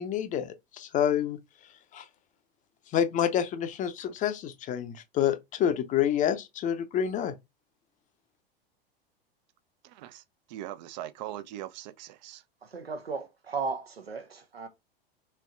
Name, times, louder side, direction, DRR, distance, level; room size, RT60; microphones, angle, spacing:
voice 1, 0.0-1.4 1.9-2.0 2.9-7.3, left 9 dB, 25° left, 0.5 m, -28 dB
voice 2, 9.8-10.2 10.5-12.4, right 13 dB, 45° right, 0.5 m, -40 dB
voice 3, 12.6-14.7, right 4 dB, 85° right, 0.9 m, -35 dB
4.4 x 2.9 x 2.3 m
figure-of-eight pair, 85°, 30 cm